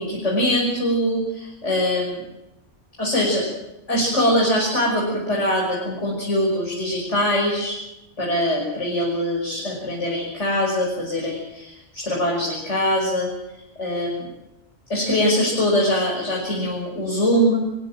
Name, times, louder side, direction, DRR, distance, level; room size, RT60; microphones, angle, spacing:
voice 1, 0.0-2.2 3.0-3.4 3.9-7.8 8.2-13.3 13.8-14.3 14.9-17.8, equal, 75° left, -3 dB, 6.4 m, -22 dB
29.0 x 16.0 x 7.6 m, 0.91 s
omnidirectional pair, 1.2 m